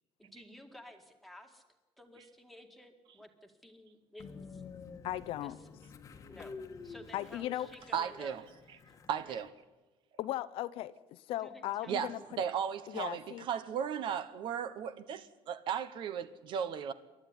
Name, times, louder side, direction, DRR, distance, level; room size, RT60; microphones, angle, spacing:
voice 1, 0.2-1.6 2.0-4.6 5.4-5.5 6.3-6.6 6.8-8.4 9.2-9.4 11.4-12.3, left 1 dB, ahead, 2.0 m, -53 dB
Train, 4.2-9.5, left 4 dB, 30° left, 1.4 m, -50 dB
voice 2, 5.0-5.6 7.1-7.7 10.2-12.4 12.9-13.5, left 14 dB, 55° left, 0.7 m, -37 dB
voice 3, 7.9-8.4 9.1-9.5 11.9-12.1 12.4-16.9, right 8 dB, 45° right, 1.1 m, -35 dB
27.5 x 12.0 x 9.7 m
cardioid pair, 165°, 11 cm